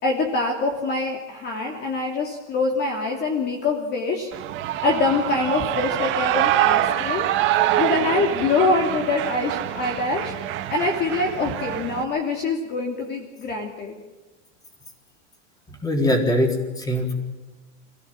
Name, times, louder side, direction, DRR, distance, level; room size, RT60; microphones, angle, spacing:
voice 1, 0.0-4.3 4.8-7.3 7.8-10.3 10.7-13.9, left 3 dB, 25° left, 1 dB, 2.9 m, -24 dB
Shout / Cheering, 4.3-12.0, right 13 dB, 35° right, 1.8 m, -25 dB
voice 2, 15.8-17.1, left 1 dB, 10° left, 3 dB, 4.1 m, -22 dB
27.5 x 16.0 x 7.7 m, 1.2 s
supercardioid pair, 160°, 35 cm